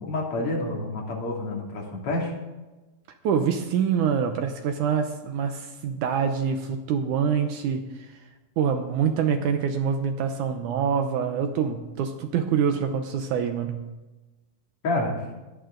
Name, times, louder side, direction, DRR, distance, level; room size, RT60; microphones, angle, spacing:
voice 1, 0.0-2.3 14.8-15.1, left 2 dB, 40° left, -2 dB, 3.2 m, -28 dB
voice 2, 3.2-8.1 8.6-13.9, right 7 dB, 80° right, 6 dB, 1.8 m, -25 dB
16.0 x 11.0 x 3.8 m, 1.1 s
omnidirectional pair, 4.5 m